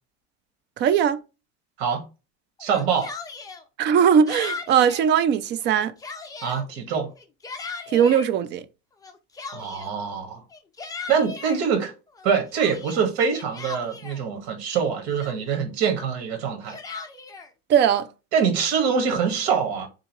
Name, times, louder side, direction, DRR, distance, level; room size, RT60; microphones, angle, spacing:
voice 1, 0.8-1.2 3.8-5.9 7.9-8.6 17.7-18.1, right 8 dB, 35° right, 0.5 m, -19 dB
Yell, 2.6-3.6 4.3-5.1 5.6-6.7 7.2-8.3 9.0-10.0 10.5-11.6 12.1-14.2 14.8-14.9 15.2-15.7 16.4-17.5, left 4 dB, 10° left, 0.6 m, -37 dB
voice 2, 2.6-3.1 6.4-7.1 9.5-10.4 11.1-11.9 12.2-16.8 18.3-19.9, right 6 dB, 80° right, 1.8 m, -24 dB
3.7 x 3.6 x 3.0 m
cardioid pair, 140°, 31 cm